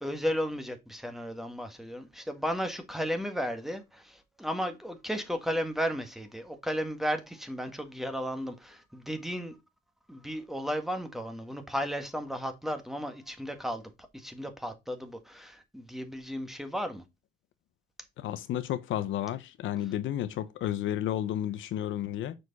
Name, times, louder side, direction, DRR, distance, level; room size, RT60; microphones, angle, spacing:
voice 1, 0.0-9.6 10.1-17.0, equal, ahead, 1.5 m, -34 dB
voice 2, 18.2-22.4, left 11 dB, 75° left, 0.7 m, -32 dB
6.4 x 4.7 x 4.0 m
cardioid pair, 90°, 20 cm